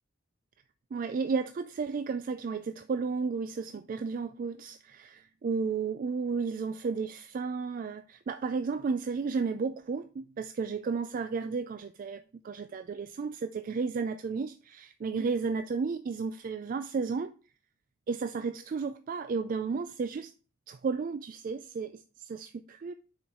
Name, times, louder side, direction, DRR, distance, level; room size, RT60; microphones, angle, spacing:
voice 1, 0.9-17.3 18.1-20.3 20.7-22.9, right 5 dB, 45° right, 0.3 m, -33 dB
6.9 x 4.4 x 3.7 m
head